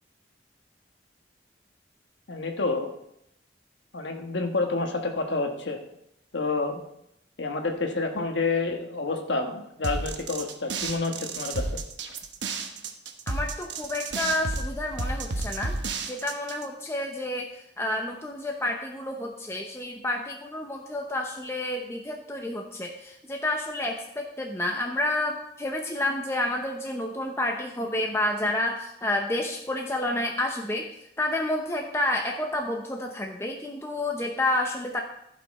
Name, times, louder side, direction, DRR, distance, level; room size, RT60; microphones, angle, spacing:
voice 1, 2.3-2.9 3.9-5.8 6.3-6.8 7.4-11.7, left 3 dB, 75° left, 4 dB, 1.3 m, -28 dB
sound 1, 9.8-16.6, right 3 dB, 80° right, 1.0 m, -32 dB
voice 2, 13.3-15.7 16.1-17.5 17.8-30.9 31.2-35.0, left 1 dB, 15° left, 2 dB, 0.7 m, -29 dB
14.5 x 5.7 x 4.3 m, 0.79 s
head